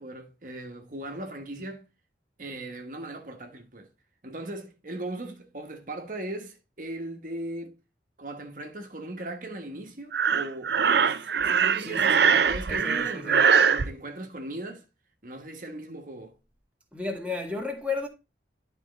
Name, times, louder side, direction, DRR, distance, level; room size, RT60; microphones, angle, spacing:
voice 1, 0.0-1.9 2.4-3.9 4.2-7.8 8.2-14.8 15.2-16.4, right 1 dB, 50° right, 1.3 m, -38 dB
Breathing, 10.1-13.9, right 6 dB, 70° right, 0.6 m, -22 dB
voice 2, 11.8-12.3 12.7-13.5 16.9-18.1, left 3 dB, 5° right, 1.6 m, -33 dB
11.0 x 4.5 x 4.1 m
head